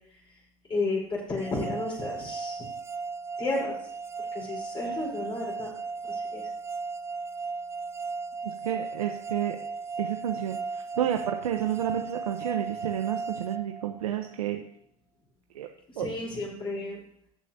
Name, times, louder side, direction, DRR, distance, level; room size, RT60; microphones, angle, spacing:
voice 1, 0.7-2.6 3.4-3.7 4.3-5.7 6.0-6.5 15.9-17.0, left 2 dB, 25° left, -4 dB, 4.5 m, -32 dB
sound 1, 1.4-14.4, right 4 dB, 15° right, 0.4 m, -36 dB
voice 2, 8.4-9.6 10.0-14.6 15.5-15.7 16.0-16.1, right 11 dB, 90° right, 4 dB, 0.9 m, -30 dB
18.0 x 6.5 x 2.8 m, 0.69 s
hypercardioid pair, 100°, 18 cm